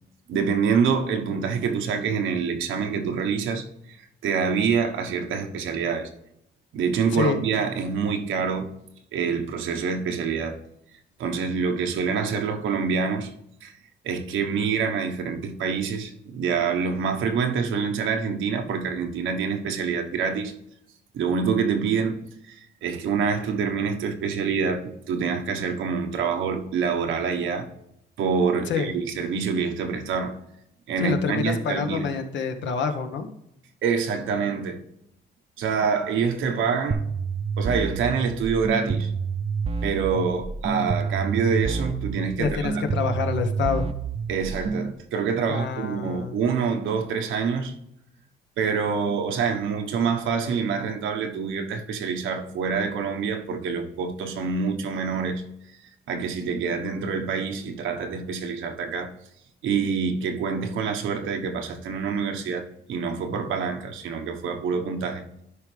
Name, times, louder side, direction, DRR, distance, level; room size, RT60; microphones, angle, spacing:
voice 1, 0.3-4.0 4.2-6.1 6.7-8.7 9.1-10.6 11.2-13.3 13.6-13.7 14.0-20.5 21.1-22.2 22.5-27.7 28.2-30.3 30.9-32.1 33.8-34.8 35.6-37.0 37.6-39.1 39.8-42.8 44.3-47.7 48.6-55.4 56.1-59.1 59.6-65.2, right 6 dB, 80° right, 1.2 m, -26 dB
voice 2, 31.0-33.3 42.4-43.9 45.5-46.4, left 6 dB, 70° left, 1.1 m, -27 dB
sound 1, 36.9-44.9, right 5 dB, 30° right, 0.6 m, -28 dB
11.5 x 5.1 x 3.3 m
cardioid pair, 90°, 20 cm